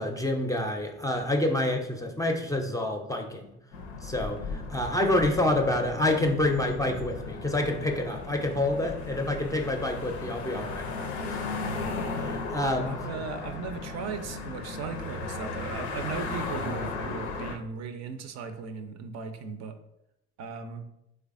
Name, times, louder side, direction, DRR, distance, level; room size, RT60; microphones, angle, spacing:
voice 1, 0.0-3.5 4.0-10.9 11.2-11.5 12.2-13.0, left 1 dB, 10° left, 3 dB, 0.4 m, -28 dB
sound 1, 3.7-17.6, left 3 dB, 90° left, 0.5 m, -36 dB
voice 2, 12.8-19.8 20.4-20.8, right 5 dB, 55° right, 7 dB, 0.5 m, -37 dB
3.3 x 3.2 x 2.4 m, 0.83 s
hypercardioid pair, 55°, 32 cm